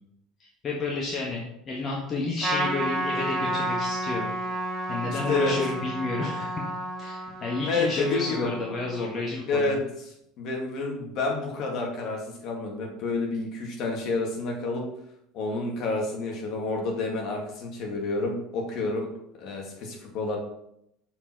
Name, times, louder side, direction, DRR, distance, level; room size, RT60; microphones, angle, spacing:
voice 1, 0.4-1.4 1.7-4.3 4.9-6.6 7.0-9.7, left 3 dB, 35° left, -2 dB, 1.5 m, -31 dB
Trumpet, 2.4-9.1, right 1 dB, 30° right, 2.3 m, -31 dB
voice 2, 5.1-5.5 7.6-8.5 9.4-9.8 10.4-14.8 15.3-19.1 19.4-20.4, left 3 dB, 55° left, 0 dB, 2.1 m, -29 dB
6.8 x 4.6 x 4.6 m, 0.76 s
hypercardioid pair, 70°, 0 cm